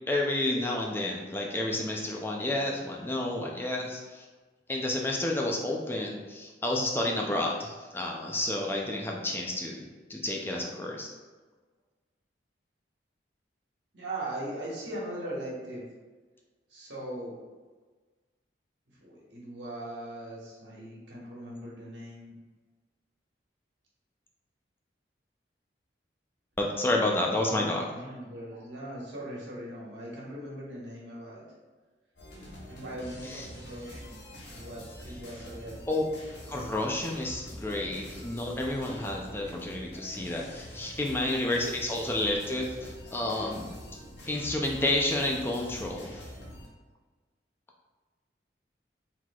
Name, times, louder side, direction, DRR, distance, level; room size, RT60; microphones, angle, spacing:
voice 1, 0.0-4.2 4.7-11.1 26.6-27.9 33.2-33.5 35.9-36.0 36.5-43.7 44.3-46.3, left 1 dB, 10° left, -1 dB, 0.4 m, -30 dB
voice 2, 13.9-15.8 16.7-17.3 19.0-22.4 27.5-31.4 32.7-36.0, right 1 dB, 90° right, -5 dB, 1.4 m, -40 dB
sound 1, 32.2-46.7, equal, 75° left, 1.1 m, -45 dB
4.6 x 3.9 x 2.3 m, 1.3 s
head